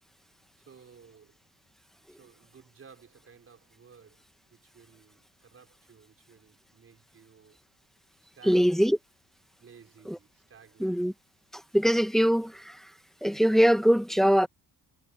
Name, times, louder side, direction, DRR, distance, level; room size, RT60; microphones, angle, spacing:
voice 1, 0.7-1.3 2.1-4.2 4.5-7.6 8.3-8.8 9.6-11.1, right 6 dB, 35° right, 4.5 m, -56 dB
voice 2, 8.4-9.0 10.1-10.2 10.8-11.1 11.5-12.9 13.2-14.5, equal, ahead, 0.9 m, -23 dB
cardioid pair, 170°, 41 cm